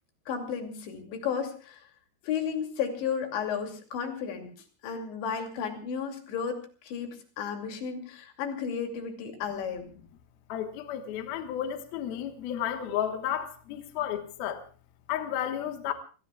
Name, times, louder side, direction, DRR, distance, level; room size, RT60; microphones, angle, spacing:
voice 1, 0.3-1.9 2.2-4.5 4.8-9.9, left 7 dB, 85° left, 4 dB, 4.9 m, -33 dB
voice 2, 10.5-14.6 15.1-15.9, left 10 dB, 70° left, 6 dB, 2.9 m, -32 dB
29.0 x 20.0 x 2.3 m, 0.37 s
omnidirectional pair, 5.0 m